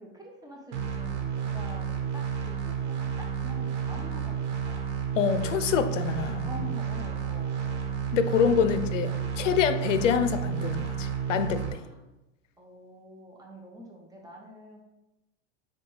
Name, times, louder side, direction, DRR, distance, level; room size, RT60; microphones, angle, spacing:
voice 1, 0.0-4.8 6.4-7.8 11.8-12.0 12.6-14.8, equal, 10° right, -2 dB, 0.7 m, -46 dB
sound 1, 0.7-11.7, right 7 dB, 70° right, 1.1 m, -31 dB
voice 2, 5.2-6.5 8.1-11.8, left 7 dB, 85° left, 11 dB, 0.5 m, -26 dB
6.7 x 2.3 x 3.1 m, 0.99 s
hypercardioid pair, 100°, 36 cm